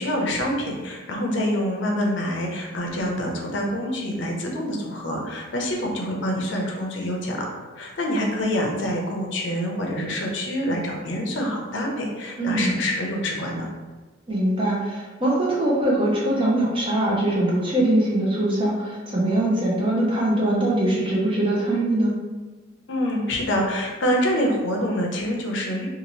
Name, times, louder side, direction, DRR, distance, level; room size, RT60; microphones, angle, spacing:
voice 1, 0.0-13.7 22.9-25.9, equal, 70° left, 0 dB, 0.6 m, -26 dB
voice 2, 12.4-12.7 14.3-22.2, right 1 dB, 30° right, -4 dB, 0.7 m, -22 dB
2.7 x 2.5 x 3.0 m, 1.3 s
head